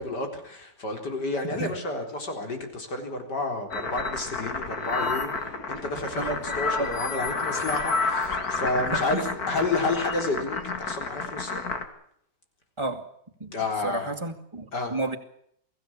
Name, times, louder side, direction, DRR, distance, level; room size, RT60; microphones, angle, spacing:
voice 1, 0.0-11.6 13.5-14.1 14.7-15.0, left 2 dB, 85° left, 4.6 m, -30 dB
sound 1, 3.7-11.8, left 4 dB, 65° left, 2.8 m, -30 dB
voice 2, 13.8-15.2, right 2 dB, 15° right, 2.3 m, -31 dB
24.0 x 16.0 x 8.6 m
omnidirectional pair, 1.8 m